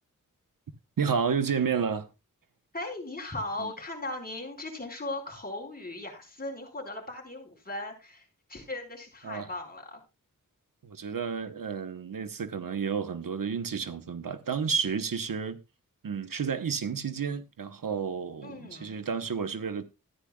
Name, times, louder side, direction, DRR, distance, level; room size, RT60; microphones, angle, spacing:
voice 1, 1.0-2.1 3.6-3.7 9.2-9.5 10.8-15.6 16.0-19.8, right 6 dB, 75° right, 1.2 m, -31 dB
voice 2, 2.7-8.2 8.5-10.0 18.4-18.9, left 2 dB, 25° left, 4.9 m, -38 dB
14.0 x 10.0 x 2.3 m
wide cardioid pair, 70°, 34 cm